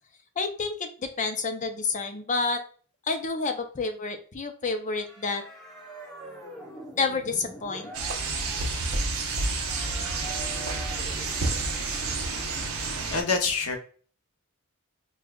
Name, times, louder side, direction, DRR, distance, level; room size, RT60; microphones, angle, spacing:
voice 1, 0.4-2.6 3.0-5.4 7.0-7.9, left 4 dB, 35° left, 0.6 m, -29 dB
sound 1, 5.0-12.4, right 1 dB, ahead, 1.0 m, -44 dB
sound 2, 7.9-13.2, right 3 dB, 70° right, 0.8 m, -29 dB
voice 2, 13.1-13.8, left 4 dB, 90° left, 0.9 m, -26 dB
5.3 x 2.3 x 2.3 m
head